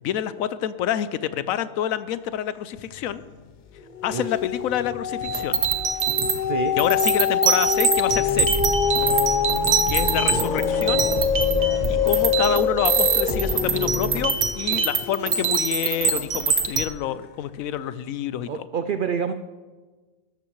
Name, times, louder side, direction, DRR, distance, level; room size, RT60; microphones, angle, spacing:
voice 1, 0.0-3.2 4.0-5.6 6.8-8.6 9.9-11.1 11.9-18.7, left 10 dB, 75° left, 14 dB, 1.0 m, -27 dB
sound 1, 2.9-3.4 3.8-16.3 16.8-16.9, left 7 dB, 50° left, 0.5 m, -26 dB
sound 2, 5.2-16.9, right 6 dB, 50° right, 0.8 m, -24 dB
sound 3, 8.1-14.2, left 1 dB, 30° left, 1.5 m, -30 dB
voice 2, 18.5-19.3, right 7 dB, 80° right, 9 dB, 0.4 m, -27 dB
13.0 x 12.5 x 3.1 m, 1.3 s
omnidirectional pair, 1.5 m